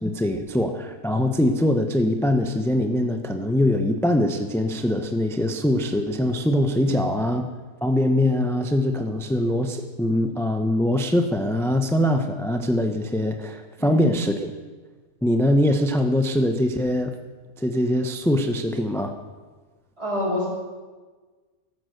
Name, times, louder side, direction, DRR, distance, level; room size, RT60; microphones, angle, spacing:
voice 1, 0.0-7.4 7.8-14.5 15.2-17.2 17.6-19.2, left 1 dB, 5° left, 6 dB, 0.6 m, -22 dB
voice 2, 6.8-7.2 13.8-14.3 20.0-20.5, left 2 dB, 45° right, -4 dB, 6.2 m, -28 dB
14.5 x 13.0 x 6.6 m, 1.3 s
omnidirectional pair, 1.5 m